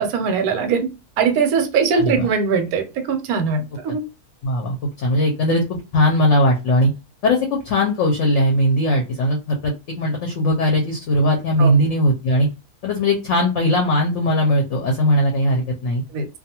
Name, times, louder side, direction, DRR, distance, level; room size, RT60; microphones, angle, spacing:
voice 1, 0.0-4.0 11.6-11.7 16.1-16.3, right 5 dB, 80° right, 1.1 m, -21 dB
voice 2, 1.9-2.3 3.9-4.0 4.4-5.6 5.9-6.9 7.2-12.5 12.8-16.0, left 1 dB, 65° left, 0.8 m, -19 dB
2.4 x 2.3 x 2.8 m
omnidirectional pair, 1.6 m